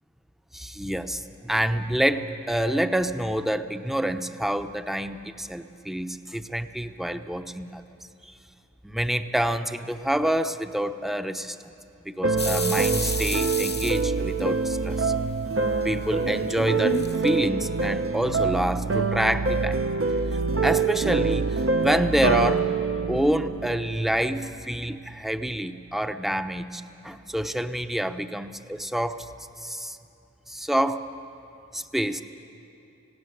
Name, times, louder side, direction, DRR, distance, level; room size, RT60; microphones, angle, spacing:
voice 1, 0.5-7.8 8.2-8.3 8.8-11.6 12.1-15.1 15.8-19.8 20.6-22.7 23.1-29.3 29.6-30.0 30.5-31.1 31.7-32.2, right 1 dB, ahead, 8 dB, 0.8 m, -27 dB
sound 1, 12.2-24.4, right 4 dB, 45° right, 0.7 m, -25 dB
sound 2, 12.4-14.8 15.2-17.5, left 3 dB, 35° left, 0.8 m, -32 dB
18.5 x 16.5 x 9.8 m, 2.8 s
wide cardioid pair, 50°, 31 cm